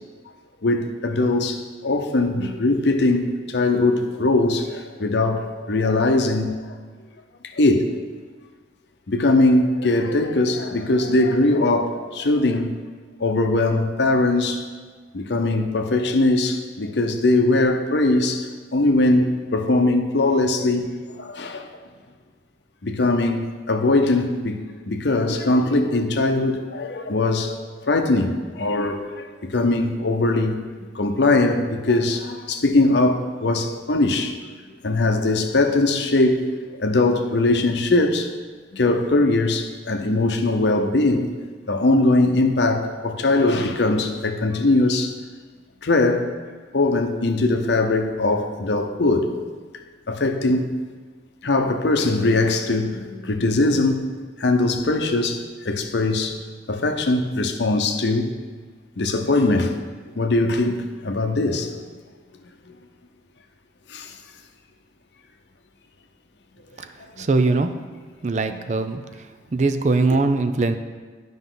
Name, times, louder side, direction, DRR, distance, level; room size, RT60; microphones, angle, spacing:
voice 1, 0.6-6.6 7.4-8.0 9.1-12.8 13.2-14.6 15.1-20.9 21.2-21.7 22.8-27.6 27.8-30.6 30.9-34.3 34.8-36.4 36.7-38.3 38.7-41.3 41.7-45.1 45.8-46.3 46.7-49.3 50.1-50.7 51.4-54.1 54.4-56.4 56.7-58.3 59.0-59.8 60.2-61.7 63.9-64.2 67.2-67.3 68.5-68.6, left 2 dB, 70° left, 5 dB, 0.7 m, -21 dB
voice 2, 67.2-67.7 68.2-69.0 69.5-70.8, right 3 dB, 40° right, 8 dB, 0.4 m, -21 dB
11.0 x 5.4 x 3.9 m, 1.5 s
head